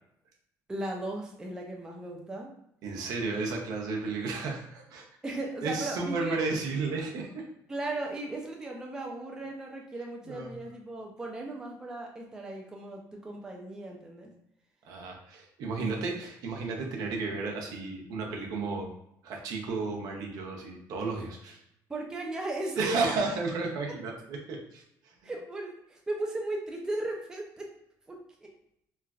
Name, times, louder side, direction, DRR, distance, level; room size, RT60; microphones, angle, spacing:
voice 1, 0.7-2.5 5.2-6.4 7.7-14.3 21.9-22.9 23.9-24.0 25.2-27.7 28.1-28.5, right 2 dB, 10° right, 0 dB, 0.3 m, -36 dB
voice 2, 2.8-5.1 5.6-7.5 10.3-10.5 14.8-18.9 19.2-21.6 22.8-25.3, right 3 dB, 65° right, 0 dB, 0.6 m, -33 dB
3.1 x 2.4 x 2.3 m, 0.75 s
cardioid pair, 160°, 7 cm